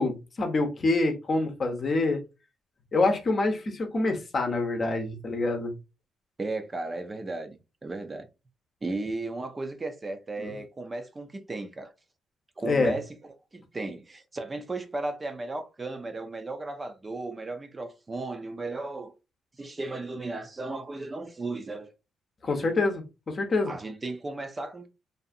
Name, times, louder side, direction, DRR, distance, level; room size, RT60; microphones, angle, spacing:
voice 1, 0.0-2.2 2.9-5.7 10.4-10.5 12.6-12.9 22.4-23.7, left 3 dB, 40° left, 0.7 m, -26 dB
voice 2, 6.4-8.3 8.8-11.9 12.6-13.1 13.5-19.1 19.6-21.9 23.6-24.9, right 2 dB, 25° right, 0.5 m, -35 dB
2.6 x 2.4 x 2.5 m
cardioid pair, 90°, 0 cm